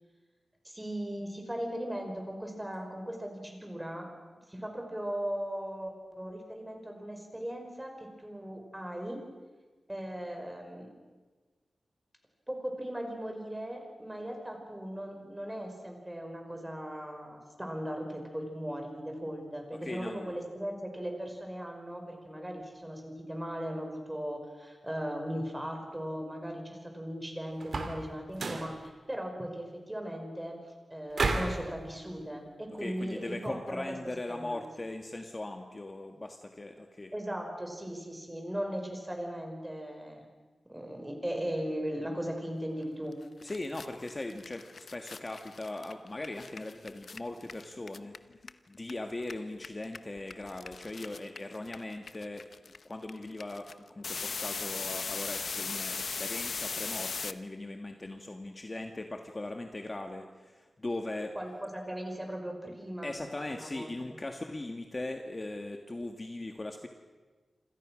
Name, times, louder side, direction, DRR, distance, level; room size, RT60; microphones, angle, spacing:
voice 1, 0.6-4.1 4.5-9.2 9.9-10.9 12.5-30.6 30.9-34.0 34.3-34.6 37.1-40.3 40.7-43.2 61.4-63.1 63.5-63.9, equal, 10° right, 3 dB, 5.4 m, -38 dB
voice 2, 19.7-20.3 32.8-37.1 43.4-48.1 48.7-52.4 52.8-61.3 63.0-66.9, left 2 dB, 25° left, 4 dB, 1.6 m, -39 dB
sound 1, 27.6-28.0 28.3-28.7 31.1-31.6, right 3 dB, 65° right, 3.2 m, -31 dB
sound 2, 43.1-43.2 43.4-48.9 49.2-57.3, left 4 dB, 60° left, 0.9 m, -38 dB
27.5 x 26.5 x 6.3 m, 1.3 s
wide cardioid pair, 125°, 0 cm